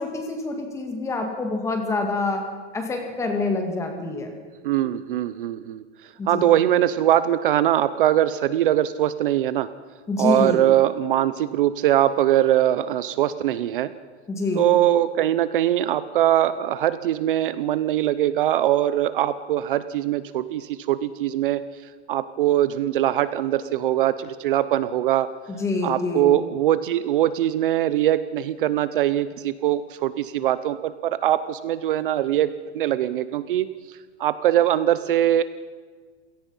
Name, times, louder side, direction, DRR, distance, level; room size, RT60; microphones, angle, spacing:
voice 1, 0.0-2.5 2.7-4.3 6.2-6.5 10.1-10.6 14.3-14.7 25.5-26.3, left 3 dB, 10° left, 4 dB, 1.9 m, -26 dB
voice 2, 4.6-5.8 6.3-9.7 10.2-13.9 14.5-21.6 22.1-25.3 25.8-35.4, right 12 dB, 50° right, 14 dB, 0.8 m, -22 dB
27.5 x 17.5 x 5.6 m, 1.5 s
supercardioid pair, 180°, 35 cm